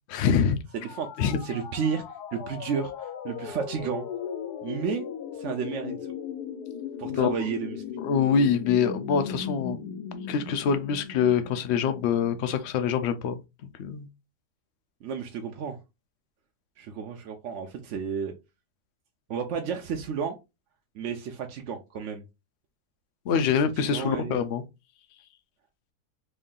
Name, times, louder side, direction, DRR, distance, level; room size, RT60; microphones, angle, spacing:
voice 1, 0.1-0.6 1.2-1.4 7.1-7.3 8.0-9.8 10.3-14.1 23.3-24.6, left 7 dB, 65° left, 0.7 m, -25 dB
sound 1, 0.7-12.6, left 7 dB, 85° left, 1.1 m, -37 dB
voice 2, 0.7-2.0 2.3-4.1 4.6-5.0 5.4-6.0 7.0-7.8 15.0-15.8 16.8-18.3 19.3-20.4 20.9-22.2 23.5-24.4, right 6 dB, 65° right, 0.8 m, -32 dB
3.2 x 2.6 x 3.7 m
omnidirectional pair, 1.6 m